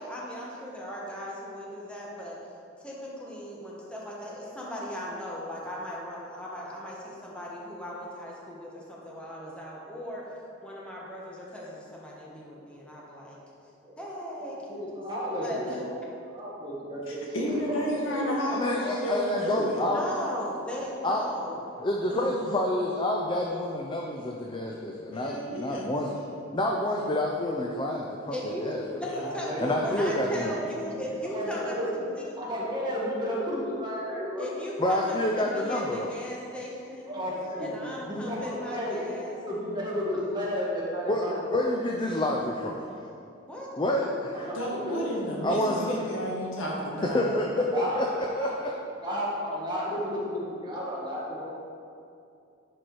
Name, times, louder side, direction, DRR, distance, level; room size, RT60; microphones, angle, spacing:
voice 1, 0.0-2.4 2.8-10.3 10.6-13.4 14.0-15.0 15.4-15.8 19.9-21.6 22.1-22.3 28.3-32.4 34.4-37.2 37.6-39.4 43.4-43.7, equal, 5° left, -4 dB, 1.2 m, -38 dB
voice 2, 14.7-15.9 16.2-17.2 17.4-17.6 17.8-18.3 29.5-29.9 30.2-30.8 31.3-31.9 32.4-34.5 37.0-37.7 38.1-39.0 39.3-41.6 44.5-44.6 44.8-45.0 45.4-45.6 47.0-47.3 47.7-48.0 48.4-48.5 49.0-51.4, equal, 20° right, -6 dB, 1.8 m, -32 dB
voice 3, 17.3-19.8 25.1-25.9 29.0-29.7 44.5-47.2, equal, 75° left, -4 dB, 1.8 m, -32 dB
voice 4, 18.5-20.1 21.0-21.2 21.8-26.1 26.5-28.8 29.6-30.6 34.8-36.2 41.1-42.8 43.8-44.5 45.4-46.0 47.1-48.7, left 1 dB, 25° left, 0 dB, 0.5 m, -28 dB
10.5 x 4.6 x 4.6 m, 2.6 s
head